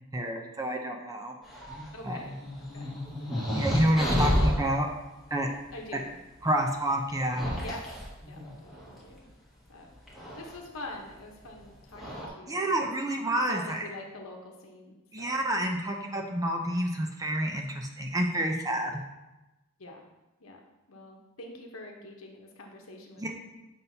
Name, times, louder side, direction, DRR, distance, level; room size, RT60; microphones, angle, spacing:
voice 1, 0.1-1.3 2.0-2.2 3.5-4.9 5.3-5.5 5.9-6.0 6.4-7.5 12.5-13.8 15.1-18.9 23.2-23.3, right 1 dB, 15° right, 2 dB, 0.6 m, -28 dB
sound 1, 1.5-4.6 6.0-6.1 7.1-9.0 10.1-10.5 11.5-11.6 11.9-12.3, equal, ahead, 1.5 m, -30 dB
voice 2, 1.9-2.3 2.6-3.5 4.0-4.6 5.7-6.2 7.6-7.8 8.3-9.3 9.7-15.3 18.9-19.0 19.8-20.0 20.4-20.6 20.9-23.3, left 2 dB, 70° left, 1 dB, 1.0 m, -44 dB
7.6 x 5.3 x 2.8 m, 1.0 s
head